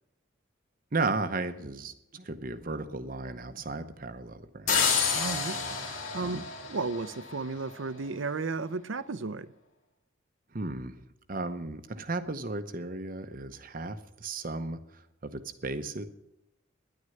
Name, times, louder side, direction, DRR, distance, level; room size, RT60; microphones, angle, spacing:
voice 1, 0.9-4.8 6.2-6.4 10.5-11.0 11.3-16.0, right 3 dB, 45° right, 0.9 m, -35 dB
sound 1, 4.7-7.5, left 5 dB, 85° left, 2.6 m, -29 dB
voice 2, 5.1-5.9 6.1-9.5, right 3 dB, 70° right, 0.7 m, -34 dB
10.5 x 9.7 x 9.1 m
head